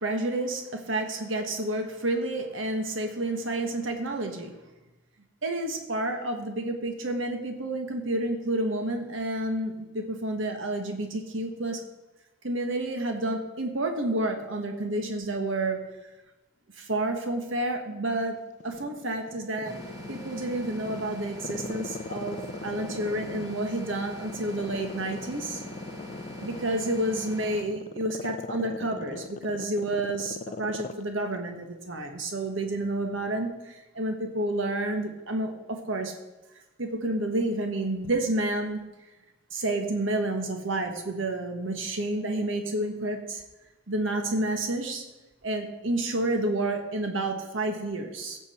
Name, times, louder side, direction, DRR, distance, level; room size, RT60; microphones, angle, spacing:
voice 1, 0.0-4.5 5.4-11.8 12.4-15.8 16.8-18.4 18.6-19.7 20.1-25.6 26.4-36.1 36.8-38.8 39.5-43.4 43.9-45.0 45.4-48.4, right 1 dB, 75° right, 4 dB, 1.5 m, -30 dB
Growling, 18.6-20.3 20.8-23.8 24.2-31.0 31.3-31.4, left 3 dB, 35° left, 0.4 m, -39 dB
sound 1, 19.6-27.6, left 1 dB, 20° right, 1.7 m, -42 dB
16.0 x 7.2 x 4.4 m, 1.0 s
head